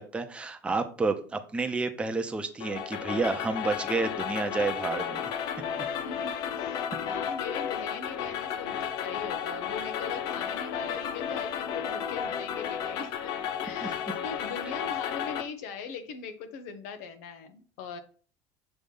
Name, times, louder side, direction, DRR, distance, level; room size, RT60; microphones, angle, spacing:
voice 1, 0.0-5.3 13.8-13.9, right 3 dB, 15° right, 6 dB, 0.7 m, -30 dB
sound 1, 2.6-15.4, left 8 dB, 60° left, 0.7 m, -33 dB
voice 2, 6.0-18.0, left 6 dB, 90° left, 9 dB, 1.1 m, -41 dB
6.8 x 3.0 x 5.4 m, 0.41 s
cardioid pair, 135°, 8 cm